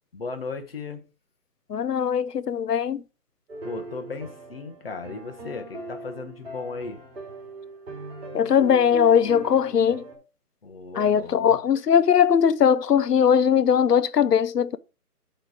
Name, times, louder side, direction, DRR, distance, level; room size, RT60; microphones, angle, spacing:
voice 1, 0.1-1.0 3.6-7.0 10.6-11.6, left 4 dB, 40° left, 0.9 m, -36 dB
voice 2, 1.7-3.0 8.3-10.1 10.9-14.8, left 8 dB, 85° left, 0.7 m, -20 dB
sound 1, 3.5-10.2, right 3 dB, 40° right, 2.5 m, -40 dB
8.3 x 3.3 x 4.8 m
figure-of-eight pair, 165°, 46 cm